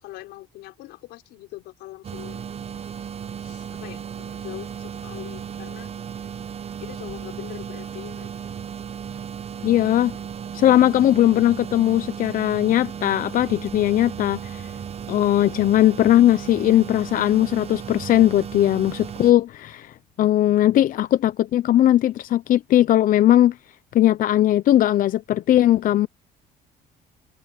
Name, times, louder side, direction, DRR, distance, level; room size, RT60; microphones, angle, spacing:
voice 1, 0.0-2.4 3.4-5.9 6.8-8.3, left 17 dB, 90° left, 4.8 m, -41 dB
sound 1, 2.0-19.3, right 8 dB, 35° right, 0.9 m, -35 dB
voice 2, 9.6-10.1 10.5-14.7 15.1-23.6 23.9-26.1, left 13 dB, 55° left, 0.5 m, -19 dB
cardioid pair, 110°, 17 cm